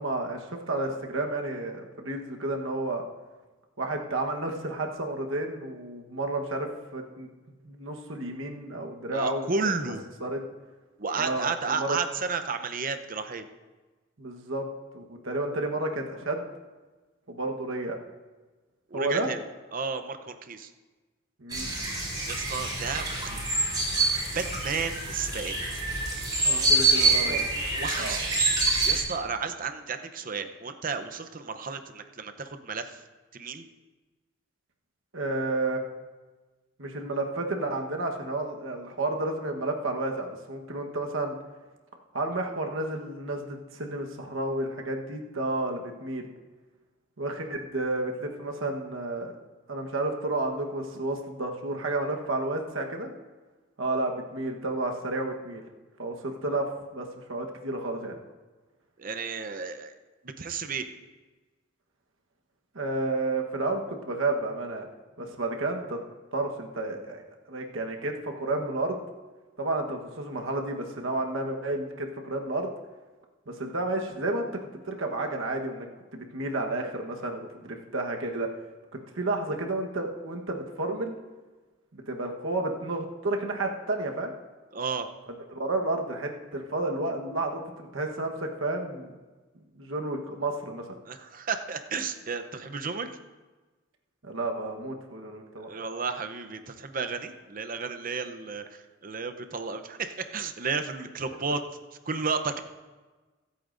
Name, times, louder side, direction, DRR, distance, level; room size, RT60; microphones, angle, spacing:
voice 1, 0.0-3.0 3.8-7.3 7.6-9.5 10.2-10.4 11.2-12.0 14.2-14.7 14.9-16.5 17.3-18.0 18.9-19.3 21.4-21.9 26.4-27.4 28.0-28.2 35.1-35.8 36.8-41.4 42.1-46.3 47.2-49.3 49.7-53.1 53.8-55.6 56.0-58.2 62.7-64.9 65.2-66.0 66.3-67.2 67.5-69.0 69.6-72.7 73.5-74.5 74.9-78.5 79.1-81.1 81.9-84.3 85.5-89.1 89.7-90.8 94.2-95.7, right 2 dB, 80° right, 2 dB, 1.2 m, -31 dB
voice 2, 9.1-10.0 11.0-13.5 18.9-19.4 19.7-20.7 22.3-23.6 24.3-25.6 26.9-28.3 28.8-33.0 33.3-33.7 59.0-59.9 60.2-60.9 84.7-85.1 91.0-93.1 95.6-101.6 102.1-102.6, right 5 dB, 45° right, 8 dB, 0.7 m, -33 dB
sound 1, 21.5-29.0, right 2 dB, 20° right, 4.3 m, -26 dB
24.5 x 8.5 x 2.6 m, 1.3 s
head